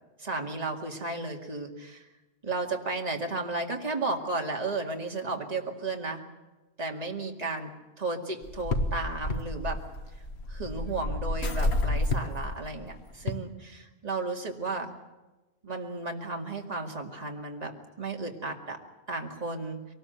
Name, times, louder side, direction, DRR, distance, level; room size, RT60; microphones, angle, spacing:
voice 1, 0.2-2.0 2.4-6.2 6.8-7.7 8.0-9.8 10.5-14.9 15.6-18.8 19.1-19.8, right 3 dB, 40° right, 1 dB, 2.3 m, -34 dB
sound 1, 8.4-13.3, left 2 dB, 85° left, 1.7 m, -30 dB
24.0 x 19.5 x 8.0 m, 1.1 s
omnidirectional pair, 1.1 m